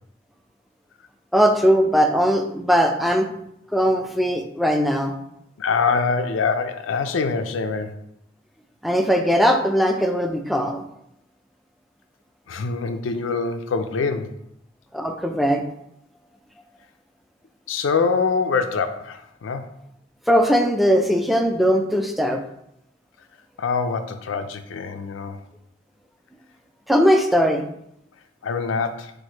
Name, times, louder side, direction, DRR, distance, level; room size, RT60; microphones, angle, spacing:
voice 1, 1.3-3.3 3.7-5.1 8.8-10.8 14.9-15.6 20.3-22.4 26.9-27.6, equal, ahead, 4 dB, 0.4 m, -19 dB
voice 2, 5.6-8.0 12.5-14.4 17.7-19.7 23.6-25.4 28.4-29.1, left 4 dB, 75° left, 8 dB, 0.4 m, -24 dB
4.5 x 2.5 x 4.4 m, 0.76 s
head